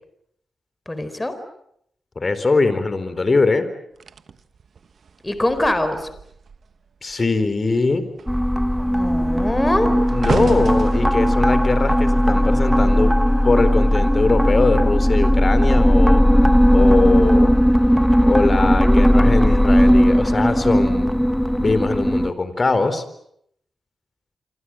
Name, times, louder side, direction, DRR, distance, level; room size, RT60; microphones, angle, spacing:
voice 1, 0.9-1.4 5.2-6.1 8.9-9.9, left 1 dB, 20° left, 10 dB, 4.3 m, -23 dB
voice 2, 2.2-3.7 7.0-8.1 9.9-13.1 13.4-16.2 16.7-17.5 18.2-21.1 21.6-23.0, left 3 dB, 40° left, 12 dB, 4.1 m, -21 dB
sound 1, 4.0-6.7 7.0-7.4 7.7-13.0 13.8-14.0, right 6 dB, 65° right, 1.4 m, -33 dB
sound 2, 8.3-22.3, equal, ahead, 1.6 m, -16 dB
27.5 x 25.0 x 7.6 m, 0.73 s
cardioid pair, 60°, 0 cm